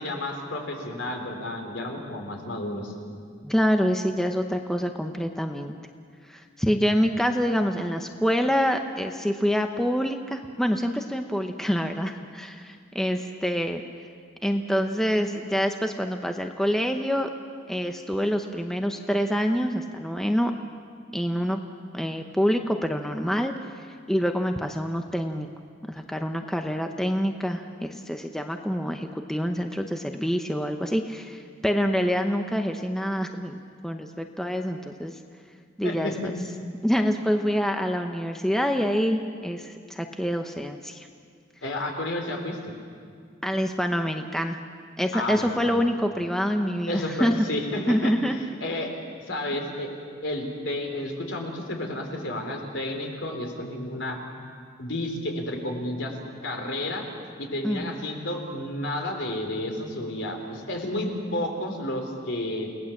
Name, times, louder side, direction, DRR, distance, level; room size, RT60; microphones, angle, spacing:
voice 1, 0.0-2.9 35.8-36.3 41.6-42.6 45.1-45.8 46.9-48.2 48.6-48.9 49.2-49.9 50.2-54.2 54.8-56.2 56.4-57.0 57.4-62.7, left 1 dB, 65° left, 2 dB, 3.9 m, -31 dB
voice 2, 3.4-5.7 6.3-13.8 14.4-17.3 17.7-20.5 21.1-21.6 21.9-25.5 25.9-35.2 35.8-36.3 36.8-41.1 43.4-44.6 45.0-47.4 47.9-48.4 57.6-58.0, equal, ahead, 4 dB, 0.8 m, -26 dB
30.0 x 18.5 x 7.3 m, 2.1 s
head